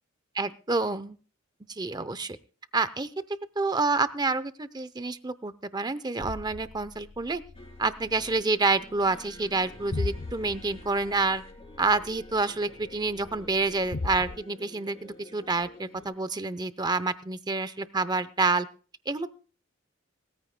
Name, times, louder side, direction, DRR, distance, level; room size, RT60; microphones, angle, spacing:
voice 1, 0.3-1.2 1.7-2.4 2.7-3.1 3.6-7.4 7.8-11.4 11.8-18.7 19.1-19.3, right 3 dB, 20° right, 15 dB, 0.6 m, -28 dB
sound 1, 6.2-14.4, left 3 dB, 50° left, 0.5 m, -39 dB
sound 2, 7.5-16.1, left 1 dB, 30° left, 3.3 m, -50 dB
20.0 x 14.0 x 2.2 m, 0.38 s
head